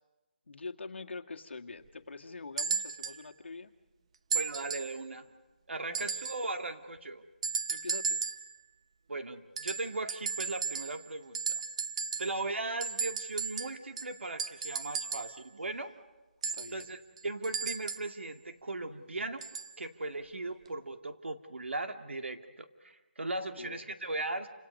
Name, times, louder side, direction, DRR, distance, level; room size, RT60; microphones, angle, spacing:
voice 1, 0.5-3.7 6.0-6.3 7.7-8.2 12.2-12.3 16.5-16.9 23.6-23.9, left 3 dB, 75° left, 4 dB, 1.9 m, -44 dB
sound 1, 2.6-3.2 4.3-5.0 5.9-6.5 7.4-8.5 9.6-11.1 11.3-12.4 12.8-15.4 16.4-18.2 19.4-19.7 20.7-20.8, right 5 dB, 30° right, 0.8 m, -35 dB
voice 2, 4.3-5.3 5.7-7.2 9.1-11.4 12.2-15.9 16.7-19.5 19.8-24.5, right 2 dB, 90° right, 7 dB, 2.2 m, -38 dB
29.0 x 26.5 x 5.4 m, 1.1 s
hypercardioid pair, 170°, 6 cm